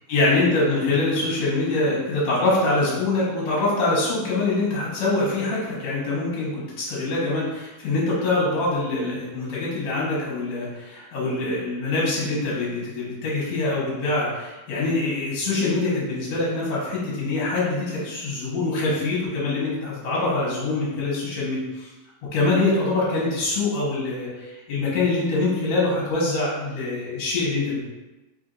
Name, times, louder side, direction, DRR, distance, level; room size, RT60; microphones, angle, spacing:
voice 1, 0.1-21.9 22.3-27.8, left 2 dB, 65° left, -6 dB, 1.9 m, -24 dB
4.7 x 2.6 x 3.8 m, 1.0 s
omnidirectional pair, 3.6 m